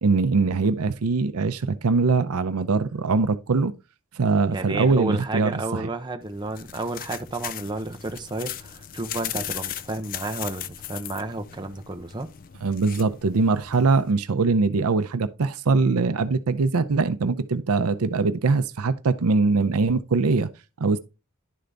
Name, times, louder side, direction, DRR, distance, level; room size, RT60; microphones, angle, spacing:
voice 1, 0.0-3.7 4.2-5.9 12.6-20.5 20.8-21.0, right 4 dB, 85° right, 0.6 m, -22 dB
voice 2, 4.5-12.3, right 2 dB, 20° right, 0.6 m, -31 dB
sound 1, 6.2-14.1, left 11 dB, 40° left, 0.4 m, -38 dB
11.0 x 3.8 x 3.4 m
head